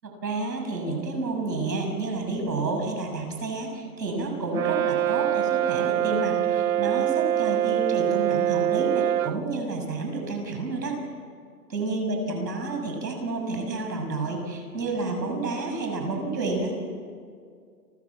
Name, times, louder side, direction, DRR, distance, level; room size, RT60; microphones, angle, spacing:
voice 1, 0.0-10.9 11.7-16.9, right 3 dB, 80° right, 2 dB, 6.8 m, -30 dB
Brass instrument, 4.5-9.4, right 11 dB, 55° right, 0.6 m, -24 dB
30.0 x 15.5 x 7.4 m, 2.2 s
hypercardioid pair, 170°, 50 cm